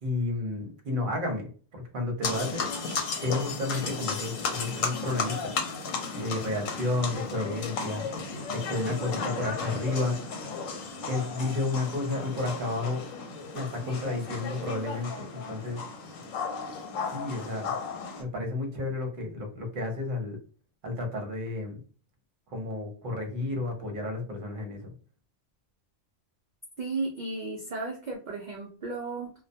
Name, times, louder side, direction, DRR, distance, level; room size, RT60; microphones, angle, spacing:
voice 1, 0.0-1.5 1.7-2.7 3.2-5.5 6.1-8.1 8.5-10.2 11.1-13.0 13.5-15.8 17.1-17.7 18.2-20.4 20.8-21.8 22.5-24.9, left 2 dB, 50° right, 2 dB, 0.8 m, -31 dB
sound 1, 2.2-18.2, left 5 dB, 85° left, 1.0 m, -34 dB
voice 2, 26.8-29.3, right 3 dB, 70° right, 0 dB, 0.4 m, -34 dB
2.3 x 2.1 x 2.6 m, 0.40 s
omnidirectional pair, 1.3 m